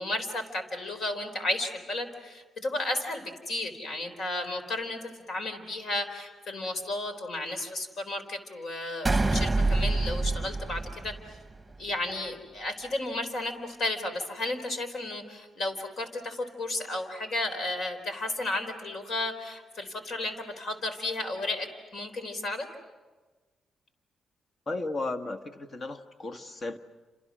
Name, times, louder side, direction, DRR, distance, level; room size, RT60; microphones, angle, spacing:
voice 1, 0.0-5.0 5.3-11.1 11.8-22.7, left 2 dB, 65° left, 7 dB, 4.0 m, -33 dB
sound 1, 9.0-11.6, right 2 dB, 15° right, 1.2 m, -26 dB
voice 2, 24.7-26.8, left 2 dB, 45° left, 8 dB, 1.6 m, -34 dB
29.5 x 27.5 x 6.3 m, 1.3 s
cardioid pair, 70°, 0 cm